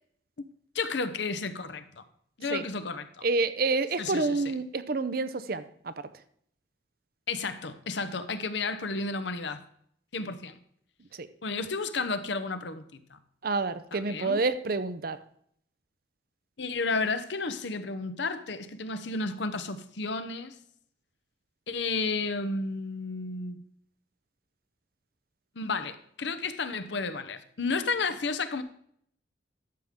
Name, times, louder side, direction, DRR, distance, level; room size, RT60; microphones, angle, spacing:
voice 1, 0.7-2.0 2.4-3.3 4.0-4.5 7.3-9.6 10.1-10.6 11.4-13.2 13.9-14.4 16.6-20.6 21.7-23.6 25.6-28.6, left 4 dB, 70° left, 0.8 m, -32 dB
voice 2, 3.2-5.6 11.2-11.3 13.4-15.2, right 3 dB, 50° right, 0.6 m, -28 dB
12.0 x 7.3 x 3.7 m
head